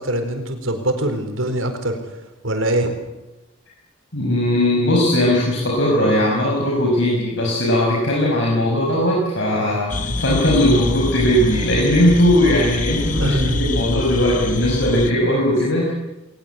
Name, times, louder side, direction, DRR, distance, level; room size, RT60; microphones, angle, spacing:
voice 1, 0.0-2.0 2.4-2.9 13.2-13.6, right 1 dB, 85° right, 6 dB, 4.6 m, -23 dB
voice 2, 4.1-15.9, left 1 dB, 65° left, -2 dB, 5.7 m, -18 dB
sound 1, 9.9-15.1, left 2 dB, 40° left, 1.3 m, -25 dB
21.5 x 20.0 x 8.3 m, 1.0 s
head